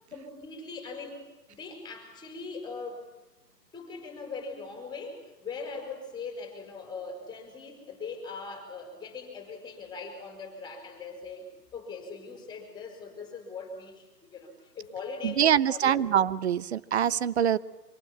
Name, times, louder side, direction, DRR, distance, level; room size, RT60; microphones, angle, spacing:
voice 1, 0.1-3.1 3.7-16.0, left 4 dB, 10° left, 5 dB, 4.8 m, -41 dB
voice 2, 15.2-17.6, right 9 dB, 40° right, 19 dB, 0.9 m, -24 dB
26.0 x 25.5 x 8.7 m, 1.0 s
figure-of-eight pair, 140°, 50 cm